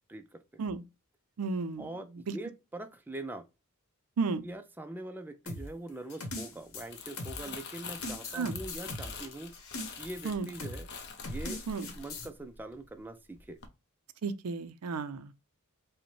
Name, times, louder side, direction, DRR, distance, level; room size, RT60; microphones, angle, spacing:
voice 1, 0.1-0.6 1.8-3.5 4.4-9.6 10.0-10.9 11.2-13.6, right 2 dB, 10° right, 0.3 m, -43 dB
voice 2, 1.4-1.9 2.3-2.4 4.2-4.4 8.3-8.5 10.2-10.5 11.7-11.9 14.2-15.3, right 4 dB, 85° right, 0.5 m, -33 dB
sound 1, 5.5-7.6 8.0-10.2 10.6-10.8 11.2-12.3, left 2 dB, 65° left, 1.1 m, -40 dB
Crumpling crinkling, 6.6-13.0 13.4-13.7, left 5 dB, 50° left, 0.6 m, -45 dB
5.0 x 2.1 x 3.1 m
head